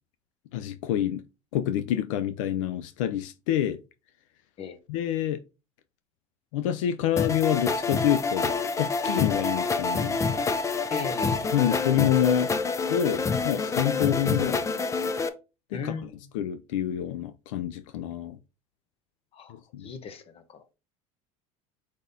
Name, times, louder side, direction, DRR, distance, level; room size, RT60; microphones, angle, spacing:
voice 1, 0.5-1.2 1.5-3.8 4.9-5.4 6.5-10.2 11.5-12.5 12.9-14.7 15.7-18.4 19.5-19.9, left 10 dB, 85° left, 0.4 m, -27 dB
sound 1, 7.2-15.3, left 4 dB, 20° left, 0.5 m, -27 dB
voice 2, 10.9-11.5 15.7-16.1 19.3-19.5 19.8-20.4, left 5 dB, 35° left, 0.9 m, -36 dB
4.9 x 4.1 x 2.7 m
supercardioid pair, 110°, 16 cm